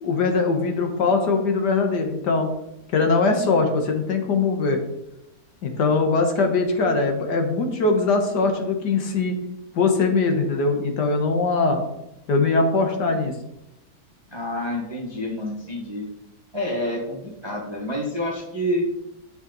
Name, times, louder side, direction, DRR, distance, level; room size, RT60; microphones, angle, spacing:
voice 1, 0.0-2.5 2.9-4.8 5.6-9.4 9.8-11.8 12.3-13.3, left 3 dB, 70° left, 5 dB, 1.8 m, -21 dB
voice 2, 14.3-16.0 16.5-17.2 17.4-18.8, left 1 dB, 15° right, -2 dB, 1.3 m, -28 dB
9.5 x 5.9 x 4.0 m, 0.87 s
omnidirectional pair, 1.9 m